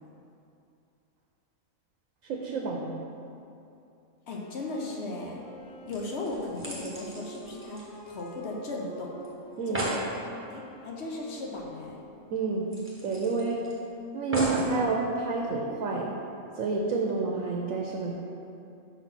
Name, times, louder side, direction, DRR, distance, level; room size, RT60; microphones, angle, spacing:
voice 1, 2.3-2.9 9.6-9.9 12.3-12.7 13.0-13.6 14.1-16.1 16.6-18.1, right 4 dB, 80° right, 0 dB, 1.0 m, -29 dB
Wind instrument woodwind instrument, 4.2-12.6, equal, 45° left, 0.4 m, -48 dB
voice 2, 4.3-5.4 5.8-9.1 9.7-9.9 10.5-11.9, left 2 dB, 60° left, -1 dB, 1.0 m, -36 dB
sound 1, 5.6-5.7 5.9-8.6 8.8-8.9 9.2-9.3 9.5-10.1 11.6-11.7 12.0-12.1 12.7-13.7 14.3-14.7 15.5-15.6, right 1 dB, 10° right, 0.9 m, -35 dB
4.9 x 4.1 x 5.9 m, 2.7 s
omnidirectional pair, 1.4 m